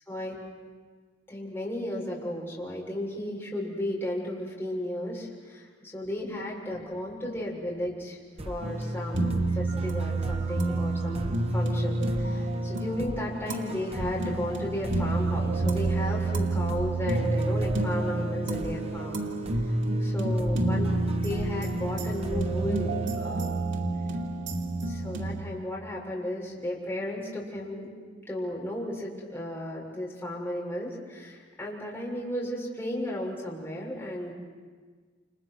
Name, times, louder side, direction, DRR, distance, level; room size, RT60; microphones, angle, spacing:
voice 1, 0.1-0.4 1.3-19.2 19.6-19.7 20.0-23.6 24.8-27.9 28.3-34.3, left 1 dB, 10° left, -4 dB, 7.0 m, -34 dB
sound 1, 8.4-23.8, right 1 dB, 35° right, 1.3 m, -41 dB
sound 2, 8.6-25.4, right 2 dB, 90° right, 2.7 m, -29 dB
29.5 x 29.0 x 6.3 m, 1.5 s
head